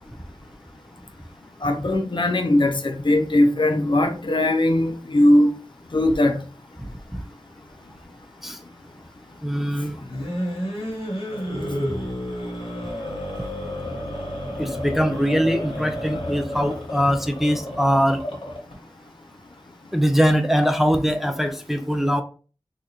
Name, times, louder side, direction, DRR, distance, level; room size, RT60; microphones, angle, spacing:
voice 1, 1.6-5.5 5.9-6.4, left 1 dB, 60° left, 0.5 m, -19 dB
voice 2, 6.8-7.2 8.4-8.6 9.4-10.0 11.9-12.0 14.6-18.2 19.9-22.2, equal, 5° right, 0.4 m, -22 dB
sound 1, 10.0-18.7, equal, 80° left, 1.2 m, -31 dB
3.8 x 2.4 x 2.8 m
wide cardioid pair, 55°, 9 cm